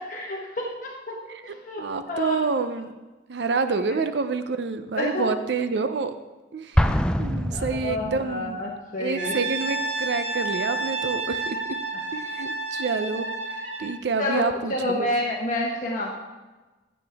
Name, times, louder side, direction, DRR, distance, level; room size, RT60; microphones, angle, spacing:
voice 1, 0.1-1.2 1.4-2.4 3.8-3.9 5.0-5.3 7.5-9.4 14.2-16.2, left 1 dB, 45° left, -2 dB, 1.2 m, -29 dB
voice 2, 1.3-2.9 3.3-6.1 6.5-8.6 9.0-11.6 12.1-13.3 13.8-15.1, right 4 dB, 65° right, 10 dB, 0.5 m, -28 dB
Explosion, 6.8-8.5, equal, 5° left, 0.3 m, -24 dB
Brass instrument, 9.2-14.0, right 2 dB, 85° right, 3.8 m, -30 dB
15.0 x 7.1 x 3.5 m, 1.2 s
head